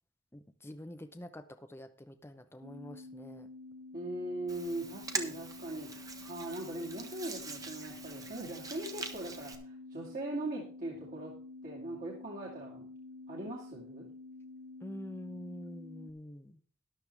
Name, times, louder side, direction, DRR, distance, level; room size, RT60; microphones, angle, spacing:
voice 1, 0.3-3.5 14.8-16.6, left 1 dB, 10° left, 8 dB, 0.7 m, -46 dB
sound 1, 2.6-16.1, left 3 dB, 70° right, 0.9 m, -49 dB
voice 2, 3.9-11.3 11.6-12.9 13.3-14.1, right 1 dB, 45° right, -4 dB, 2.4 m, -40 dB
Hands, 4.5-9.6, right 3 dB, 15° right, 1.2 m, -43 dB
13.5 x 11.0 x 3.4 m, 0.42 s
head